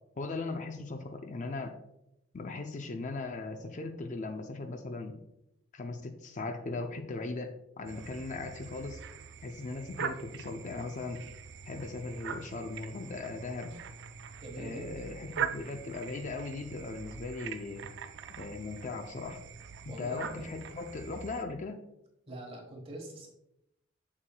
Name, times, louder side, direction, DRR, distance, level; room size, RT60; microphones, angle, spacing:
voice 1, 0.2-1.8 2.3-5.2 5.7-9.0 9.4-11.2 11.6-13.8 14.6-17.9 18.4-19.4 20.0-21.8, left 3 dB, 40° left, 6 dB, 0.5 m, -38 dB
sound 1, 7.9-21.4, right 7 dB, 60° right, 0.4 m, -42 dB
voice 2, 14.4-15.0 19.9-20.5 22.3-23.3, right 1 dB, 30° right, 1 dB, 1.4 m, -44 dB
7.2 x 6.5 x 2.2 m, 0.83 s
head